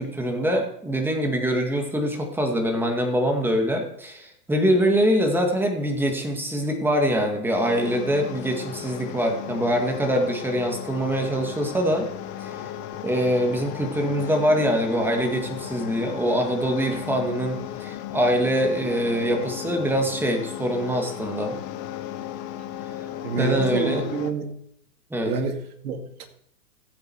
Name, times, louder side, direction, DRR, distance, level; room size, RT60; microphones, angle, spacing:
voice 1, 0.0-12.1 12.4-12.6 13.0-21.6 23.4-24.0 25.1-25.4, equal, 5° right, 3 dB, 2.0 m, -24 dB
sound 1, 7.6-24.3, left 11 dB, 15° left, 0.4 m, -35 dB
voice 2, 23.2-24.5 25.3-26.3, right 4 dB, 65° right, 5 dB, 2.5 m, -28 dB
15.0 x 8.1 x 4.5 m, 0.71 s
hypercardioid pair, 125°, 49 cm